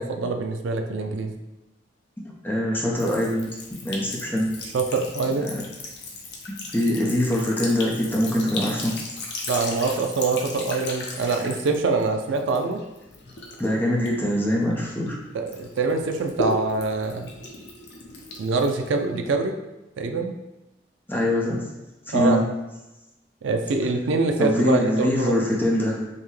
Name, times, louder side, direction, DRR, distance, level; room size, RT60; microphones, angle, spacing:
voice 1, 0.0-1.3 4.7-5.5 9.5-12.8 15.3-17.3 18.4-19.6 20.0-20.3 22.1-22.4 23.4-25.4, right 3 dB, 80° right, 5 dB, 0.4 m, -24 dB
voice 2, 2.2-3.5 3.8-4.5 6.7-9.0 13.6-15.2 21.1-21.6 22.1-22.4 24.4-26.0, left 1 dB, 10° left, -3 dB, 0.6 m, -23 dB
Sink (filling or washing) / Trickle dribble, 3.0-15.1 15.5-19.3, left 2 dB, 60° left, 0.7 m, -36 dB
5.5 x 2.1 x 3.2 m, 1.0 s
head